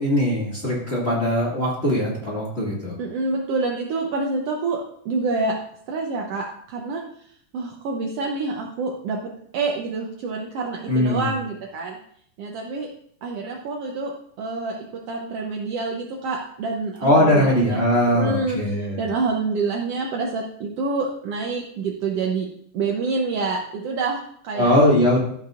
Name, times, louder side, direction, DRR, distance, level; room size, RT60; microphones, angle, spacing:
voice 1, 0.0-3.0 10.9-11.3 17.0-19.1 24.5-25.2, left 1 dB, 25° left, -5 dB, 1.8 m, -20 dB
voice 2, 3.0-5.5 5.9-7.0 7.5-9.2 9.5-12.0 12.4-12.9 13.2-14.8 15.1-18.6 19.0-22.5 22.7-24.7, right 3 dB, 75° right, -1 dB, 1.4 m, -27 dB
14.5 x 6.7 x 2.5 m, 0.65 s
omnidirectional pair, 3.9 m